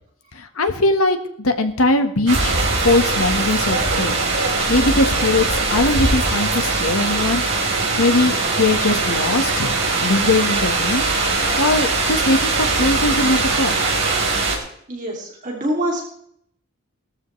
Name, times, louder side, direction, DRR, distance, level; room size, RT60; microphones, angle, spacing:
voice 1, 0.3-4.1 4.7-7.4 8.0-9.7 10.0-11.0 11.6-13.7, left 2 dB, 90° left, 6 dB, 1.5 m, -20 dB
sound 1, 2.3-14.6, right 3 dB, 55° right, 3.7 m, -21 dB
voice 2, 14.9-16.0, right 1 dB, 35° right, -1 dB, 2.8 m, -25 dB
18.0 x 13.5 x 3.3 m, 0.68 s
head